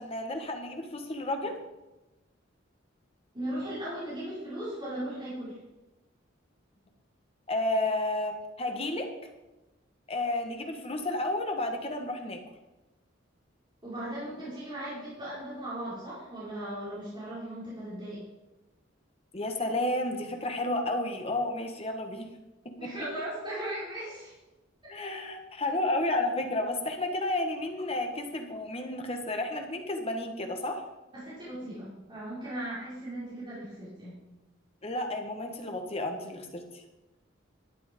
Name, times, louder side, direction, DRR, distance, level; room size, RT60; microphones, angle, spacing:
voice 1, 0.0-1.5 7.5-9.1 10.1-12.4 19.3-22.2 24.9-30.8 34.8-36.8, left 2 dB, 30° left, 4 dB, 1.6 m, -31 dB
voice 2, 3.3-5.6 13.8-18.2 22.7-24.3 31.1-34.1, right 1 dB, 25° right, -10 dB, 5.1 m, -37 dB
12.0 x 9.2 x 5.4 m, 1.0 s
head